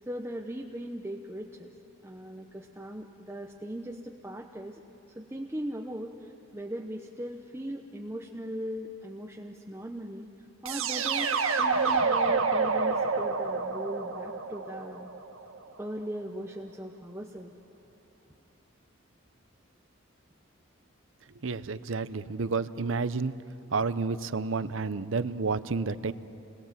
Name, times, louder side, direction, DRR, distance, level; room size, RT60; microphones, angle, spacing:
voice 1, 0.1-1.7 2.0-4.8 5.1-10.3 10.6-15.1 15.8-17.5, equal, 10° right, 1 dB, 0.8 m, -39 dB
sound 1, 10.7-15.6, right 4 dB, 85° right, 1.7 m, -28 dB
voice 2, 21.4-23.3 23.7-26.1, right 4 dB, 70° right, 14 dB, 0.7 m, -30 dB
29.0 x 21.0 x 7.5 m, 2.7 s
head